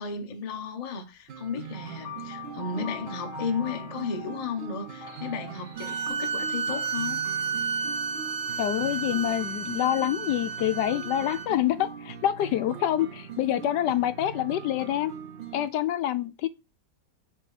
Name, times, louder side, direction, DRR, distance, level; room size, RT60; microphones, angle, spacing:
voice 1, 0.0-7.2, left 5 dB, 40° left, 0.5 m, -34 dB
sound 1, 1.3-15.7, right 8 dB, 80° right, 0.5 m, -42 dB
sound 2, 1.7-6.1, left 5 dB, 10° left, 1.2 m, -43 dB
sound 3, 5.8-11.5, right 5 dB, 60° right, 1.4 m, -32 dB
voice 2, 8.6-15.1 15.5-16.5, left 12 dB, 80° left, 1.1 m, -26 dB
6.9 x 2.9 x 4.8 m
omnidirectional pair, 1.9 m